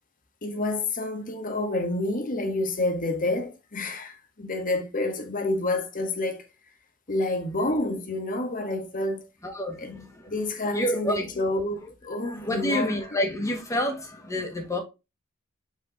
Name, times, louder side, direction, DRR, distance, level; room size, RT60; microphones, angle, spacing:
voice 1, 0.4-6.5 7.1-9.3 9.8-12.9, left 2 dB, 40° left, 1.4 m, -29 dB
voice 2, 9.4-10.3 10.7-11.3 12.2-14.8, left 1 dB, 15° left, 1.7 m, -28 dB
5.4 x 4.9 x 3.7 m
head